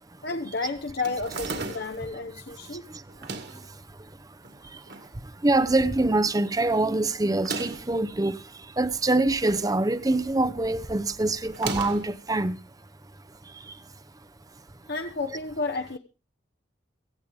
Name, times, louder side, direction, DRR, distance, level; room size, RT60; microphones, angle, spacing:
voice 1, 0.2-2.8 14.9-16.0, left 3 dB, 55° left, 1.0 m, -31 dB
sound 1, 1.0-2.1 3.1-3.7 4.4-5.1 5.5-5.6 5.7-5.8 7.3-7.9 9.0-9.7 10.0-10.4 11.5-12.2, right 3 dB, 55° right, 2.1 m, -35 dB
voice 2, 5.4-8.4 8.8-12.6, right 2 dB, 20° right, 0.6 m, -24 dB
16.5 x 15.5 x 3.5 m
head